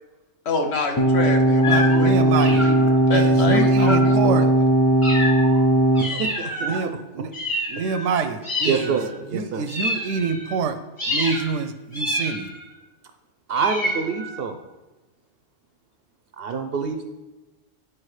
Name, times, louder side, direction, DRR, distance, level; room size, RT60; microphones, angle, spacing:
voice 1, 0.5-4.5, left 3 dB, 60° left, 3 dB, 1.0 m, -27 dB
sound 1, 1.0-6.0, right 1 dB, 40° left, 0.3 m, -18 dB
sound 2, 1.6-2.0 2.4-3.0 3.8-4.2 5.0-5.6 5.9-6.8 7.3-8.1 8.4-9.1 9.7-10.6 11.0-11.5 11.9-12.7 13.5-14.4, left 1 dB, 25° left, 1.2 m, -28 dB
voice 2, 1.6-2.7 3.1-4.5 6.6-7.3 7.7-9.0 9.3-10.8 11.1-12.5, right 5 dB, 80° right, 9 dB, 0.9 m, -26 dB
voice 3, 6.0-7.0 8.6-9.7 13.5-14.6 16.4-17.0, right 5 dB, 60° right, 6 dB, 0.7 m, -26 dB
9.8 x 4.7 x 3.2 m, 1.1 s
omnidirectional pair, 1.3 m